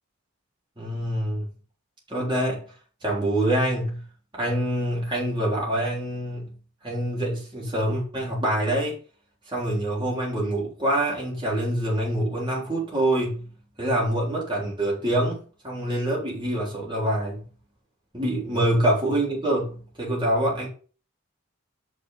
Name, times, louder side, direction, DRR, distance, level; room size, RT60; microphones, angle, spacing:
voice 1, 0.8-1.5 2.1-2.6 3.0-4.0 4.3-6.5 6.8-9.0 9.5-13.5 13.8-17.4 18.1-20.7, right 1 dB, 25° right, 3.6 m, -25 dB
6.1 x 6.1 x 5.5 m
head